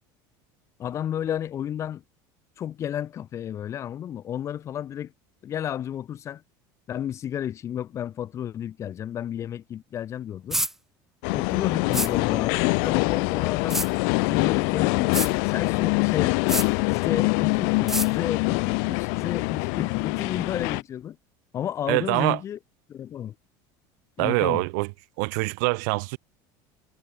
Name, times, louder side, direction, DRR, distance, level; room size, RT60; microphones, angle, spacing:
voice 1, 0.8-2.0 2.6-5.1 5.4-6.4 6.9-10.6 11.3-13.8 14.2-16.5 16.9-21.2 21.5-22.6 22.9-23.3 24.2-24.6, left 10 dB, 30° left, 2.6 m, -32 dB
sound 1, 10.5-10.7 11.9-12.1 13.7-13.9 15.1-15.3 16.5-16.7 17.9-18.1, right 1 dB, 5° right, 1.7 m, -26 dB
sound 2, 11.2-20.8, left 40 dB or more, 65° left, 2.5 m, -24 dB
voice 2, 21.9-22.4 24.2-24.9 25.2-26.2, right 31 dB, 70° right, 1.3 m, -24 dB
cardioid pair, 160°, 10 cm